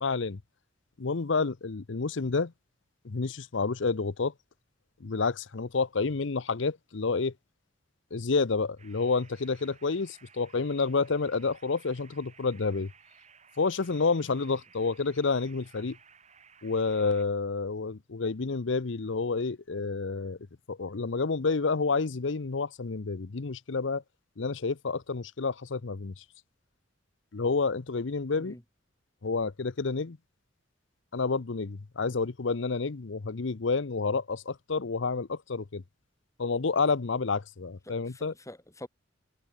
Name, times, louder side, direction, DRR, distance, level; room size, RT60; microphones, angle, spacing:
voice 1, 0.0-0.4 1.0-2.5 3.0-4.3 5.0-7.3 8.1-12.9 13.6-16.0 16.6-20.4 20.7-24.0 24.4-26.2 27.3-28.6 29.2-30.2 31.1-35.8 36.4-38.3, left 4 dB, 70° left, 0.7 m, -29 dB
sound 1, 8.8-17.2, right 6 dB, 35° right, 7.2 m, -58 dB
voice 2, 37.9-38.9, left 1 dB, 15° left, 3.1 m, -46 dB
head